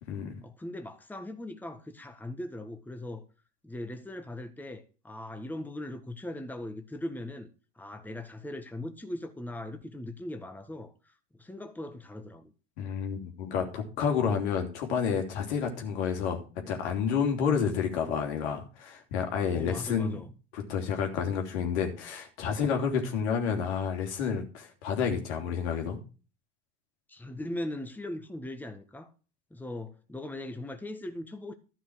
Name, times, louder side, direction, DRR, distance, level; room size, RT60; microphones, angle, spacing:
voice 1, 0.4-3.2 3.6-7.5 7.8-11.1 11.4-12.5 19.5-20.3 27.1-29.1 29.5-31.5, left 1 dB, 5° left, 1.4 m, -39 dB
voice 2, 12.8-20.2 20.5-26.0, left 7 dB, 70° left, 3.1 m, -30 dB
13.0 x 6.0 x 6.2 m
hypercardioid pair, 75°, 35 cm